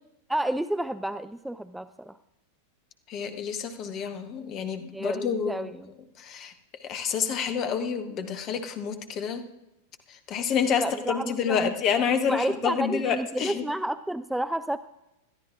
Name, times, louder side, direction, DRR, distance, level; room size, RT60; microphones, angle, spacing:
voice 1, 0.3-2.2 4.9-5.9 10.8-11.7 12.3-14.8, right 1 dB, 5° right, 13 dB, 0.3 m, -30 dB
voice 2, 3.1-5.7 6.2-6.5 6.8-9.4 10.1-13.7, left 7 dB, 35° left, 8 dB, 1.2 m, -28 dB
21.0 x 13.0 x 2.5 m, 0.92 s
figure-of-eight pair, 90°, 0 cm